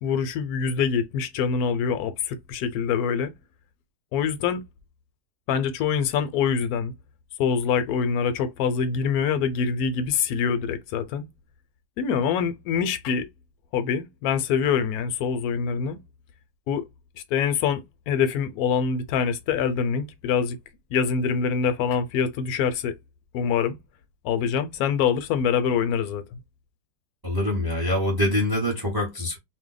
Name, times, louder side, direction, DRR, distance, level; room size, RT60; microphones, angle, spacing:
voice 1, 0.0-3.3 4.1-4.6 5.5-6.9 7.4-11.2 12.0-13.3 13.7-16.0 16.7-16.8 17.3-20.6 20.9-22.9 23.3-23.8 24.2-26.4, left 6 dB, 75° left, 1.0 m, -25 dB
voice 2, 27.2-29.4, left 1 dB, 20° right, 0.6 m, -24 dB
2.7 x 2.0 x 3.8 m
omnidirectional pair, 1.7 m